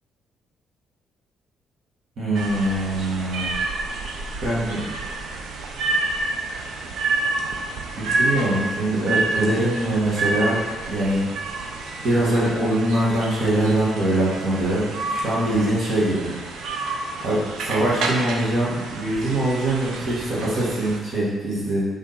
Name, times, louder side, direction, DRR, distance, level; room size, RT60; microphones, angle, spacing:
voice 1, 2.2-3.6 4.4-4.9 8.0-10.6 10.8-11.2 12.0-16.3 17.2-21.9, right 1 dB, 60° right, -6 dB, 1.8 m, -23 dB
sound 1, 2.3-21.0, right 3 dB, 80° right, 0.7 m, -29 dB
6.3 x 3.6 x 4.2 m, 1.3 s
cardioid pair, 90°, 0 cm